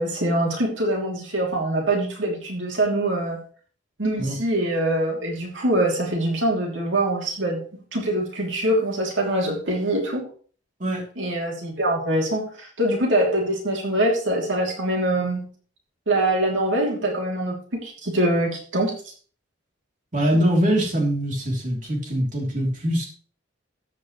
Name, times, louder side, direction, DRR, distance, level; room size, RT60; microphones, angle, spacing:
voice 1, 0.0-3.4 4.0-7.6 7.9-10.2 11.2-15.4 16.1-18.9, right 1 dB, 75° right, 0 dB, 3.0 m, -24 dB
voice 2, 20.1-23.0, equal, 40° right, -1 dB, 3.3 m, -23 dB
14.0 x 9.6 x 3.2 m, 0.42 s
head